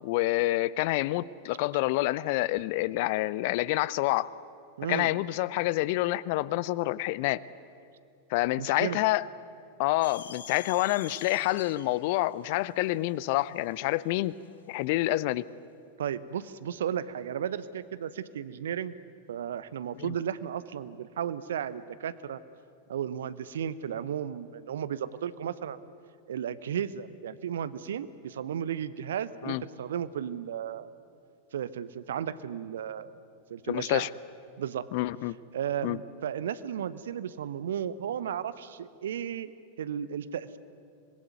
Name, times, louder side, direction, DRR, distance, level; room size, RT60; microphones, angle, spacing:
voice 1, 0.0-4.3 4.9-7.4 8.3-9.3 9.8-14.3 14.7-15.5 20.0-20.1 29.4-29.6 33.7-34.1 34.9-35.4 35.8-36.0, left 18 dB, 50° left, 20 dB, 0.6 m, -27 dB
voice 2, 4.8-5.1 8.6-9.0 16.0-18.9 19.3-22.4 22.9-25.8 26.3-30.9 31.5-33.1 33.5-34.1 34.6-34.9 35.5-39.5 39.8-40.6, right 9 dB, 60° right, 16 dB, 0.9 m, -34 dB
sound 1, 10.0-14.5, left 8 dB, 65° left, 1.0 m, -46 dB
25.5 x 20.5 x 9.4 m, 2.4 s
figure-of-eight pair, 90°, 0 cm